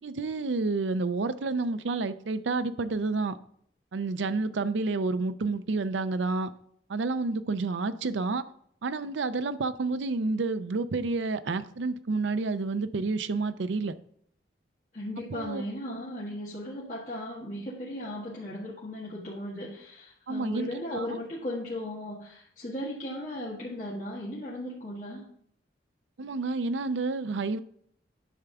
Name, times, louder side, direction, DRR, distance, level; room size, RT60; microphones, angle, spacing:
voice 1, 0.0-3.4 3.9-6.5 6.9-8.5 8.8-14.0 15.3-15.6 20.3-21.2 26.2-27.6, right 3 dB, 85° right, 0.5 m, -29 dB
voice 2, 14.9-25.2, left 1 dB, 40° left, 1.6 m, -37 dB
10.0 x 3.6 x 6.8 m
head